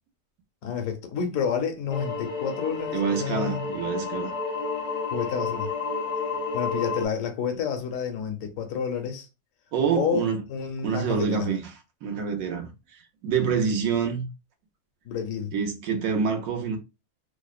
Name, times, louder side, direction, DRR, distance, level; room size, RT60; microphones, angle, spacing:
voice 1, 0.6-3.7 5.1-5.7 6.5-9.3 9.9-11.5 15.0-15.5, left 7 dB, 85° left, 1.0 m, -30 dB
sound 1, 1.9-7.0, left 4 dB, 55° left, 0.4 m, -31 dB
voice 2, 2.9-4.3 9.7-10.4 10.8-11.7 12.0-12.7 13.2-14.3 15.5-16.8, right 6 dB, 90° right, 1.1 m, -26 dB
2.7 x 2.0 x 2.3 m
omnidirectional pair, 1.4 m